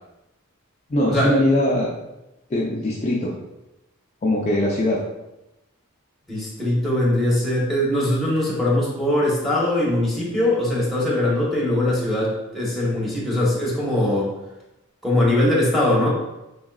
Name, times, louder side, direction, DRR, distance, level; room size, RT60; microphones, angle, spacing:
voice 1, 0.9-1.9 2.5-3.4 4.2-5.0, left 1 dB, 30° left, -4 dB, 0.4 m, -21 dB
voice 2, 6.3-14.3 15.0-16.1, left 1 dB, ahead, -6 dB, 1.0 m, -21 dB
3.8 x 3.6 x 2.3 m, 0.93 s
head